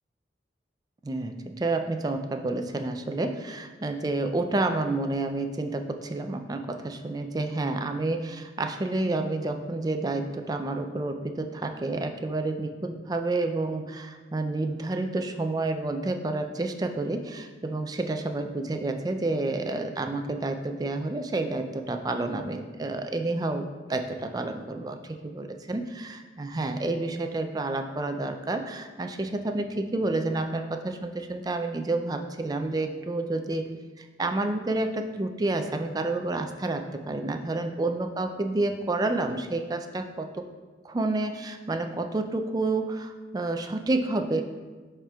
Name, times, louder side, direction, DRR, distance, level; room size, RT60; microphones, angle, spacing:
voice 1, 1.0-40.4 40.8-44.4, right 2 dB, 20° right, 6 dB, 0.3 m, -29 dB
10.5 x 4.4 x 2.3 m, 1.3 s
head